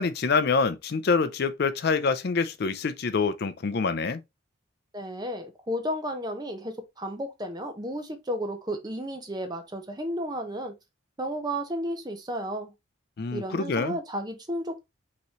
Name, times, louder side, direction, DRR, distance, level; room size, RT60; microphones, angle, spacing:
voice 1, 0.0-4.2 13.2-14.0, left 4 dB, 50° left, 0.4 m, -26 dB
voice 2, 4.9-10.7 11.2-12.7 13.3-14.9, equal, 20° right, 0.8 m, -33 dB
5.7 x 3.0 x 2.9 m
head